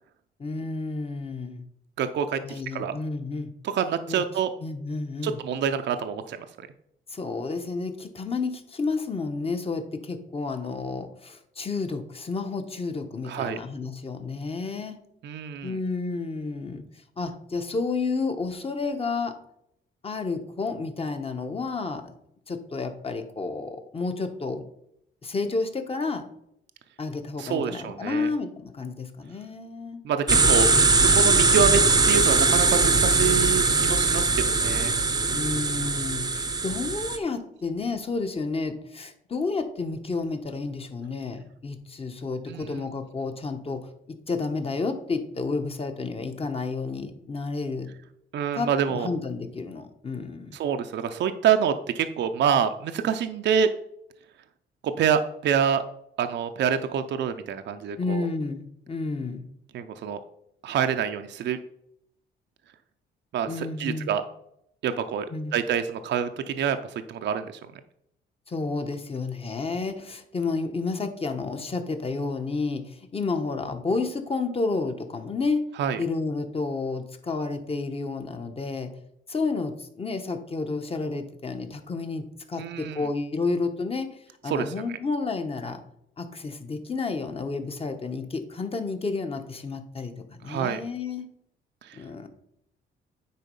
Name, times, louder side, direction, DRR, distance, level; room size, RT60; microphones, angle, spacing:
voice 1, 0.4-1.6 2.4-3.5 4.1-4.2 4.6-5.4 7.1-15.0 15.6-16.8 17.2-19.3 20.0-22.2 22.5-24.6 25.2-26.2 27.0-30.0 35.3-47.9 48.5-50.6 58.0-59.4 63.5-64.1 65.3-65.5 68.5-75.6 76.0-78.9 79.3-84.1 84.4-85.8 86.2-91.3 91.9-92.3, left 3 dB, 30° left, 7 dB, 1.2 m, -31 dB
voice 2, 2.0-2.9 3.6-4.5 5.2-6.5 13.2-13.6 15.2-15.8 27.4-28.3 30.0-30.7 30.9-31.8 32.1-35.0 42.5-42.8 48.3-49.1 50.5-53.7 55.0-55.8 56.2-58.3 59.7-60.2 60.6-61.6 63.3-64.2 64.8-65.3 65.5-67.5 75.8-76.0 82.6-83.0 84.5-84.7 90.4-90.8 91.8-92.0, right 7 dB, 65° right, 8 dB, 0.6 m, -26 dB
sound 1, 30.3-37.2, right 3 dB, 20° right, 0.7 m, -21 dB
9.5 x 4.2 x 5.4 m, 0.74 s
cardioid pair, 90°, 20 cm